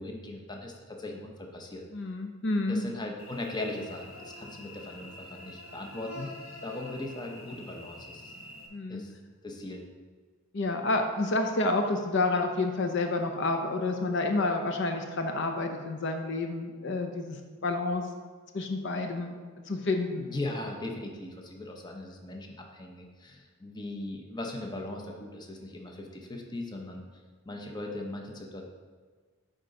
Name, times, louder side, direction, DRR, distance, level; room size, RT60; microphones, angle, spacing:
voice 1, 0.0-1.8 2.7-6.3 6.6-8.3 8.9-9.1 9.4-9.8 20.2-27.0 27.5-28.7, left 2 dB, 20° left, 2 dB, 0.8 m, -39 dB
voice 2, 1.9-2.9 8.7-9.0 10.5-18.1 18.5-19.4 19.6-20.3, left 2 dB, 60° left, 5 dB, 0.6 m, -29 dB
Cricket / Buzz, 3.2-8.7, left 1 dB, 85° left, 1.2 m, -46 dB
8.8 x 3.8 x 5.2 m, 1.5 s
head